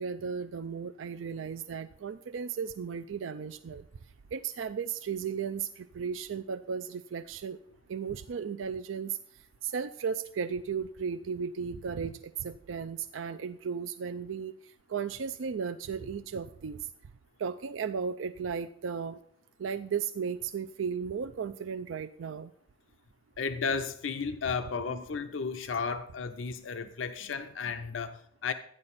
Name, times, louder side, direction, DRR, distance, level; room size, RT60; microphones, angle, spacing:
voice 1, 0.0-3.8 4.3-7.6 7.9-9.2 9.6-14.5 14.9-16.9 17.4-19.2 19.6-22.5 24.7-25.0, right 6 dB, 90° right, 11 dB, 0.4 m, -35 dB
voice 2, 23.4-28.5, left 5 dB, 85° left, 9 dB, 0.6 m, -34 dB
13.0 x 9.7 x 4.1 m, 0.67 s
head